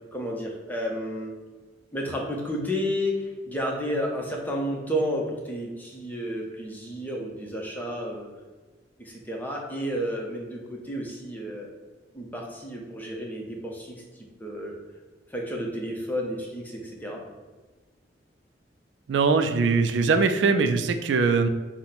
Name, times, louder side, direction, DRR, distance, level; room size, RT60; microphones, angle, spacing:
voice 1, 0.1-1.3 1.9-8.3 9.0-11.7 12.1-13.9 14.4-14.7 15.3-17.2, equal, 10° left, -1 dB, 0.7 m, -31 dB
voice 2, 19.1-21.5, right 4 dB, 75° right, 8 dB, 0.4 m, -21 dB
5.9 x 2.1 x 4.0 m, 1.3 s
head